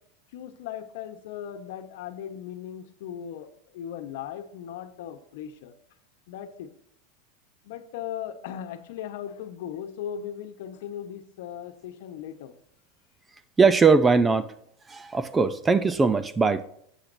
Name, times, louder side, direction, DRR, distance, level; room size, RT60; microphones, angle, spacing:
voice 1, 0.3-5.7 6.3-6.7 7.6-12.5, left 9 dB, 70° left, 8 dB, 1.1 m, -38 dB
voice 2, 13.6-14.5 14.9-16.6, right 4 dB, 15° right, 14 dB, 0.5 m, -20 dB
11.5 x 8.3 x 2.7 m, 0.69 s
supercardioid pair, 140°, 0 cm